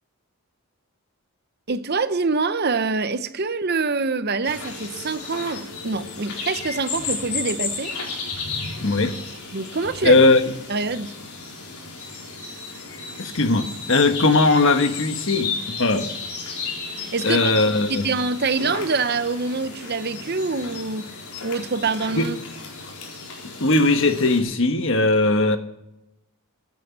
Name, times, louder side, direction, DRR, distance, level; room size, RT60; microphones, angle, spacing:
voice 1, 1.7-7.9 9.5-10.2 10.7-11.1 17.0-17.6 17.9-21.1 21.4-22.4, right 4 dB, 45° right, 0.8 m, -25 dB
sound 1, 4.4-24.4, left 4 dB, 85° left, 4.2 m, -34 dB
voice 2, 8.8-9.2 10.0-10.4 13.2-16.1 17.2-18.1 22.1-22.3 23.6-25.6, left 2 dB, 60° left, 1.4 m, -19 dB
15.5 x 9.3 x 7.3 m
head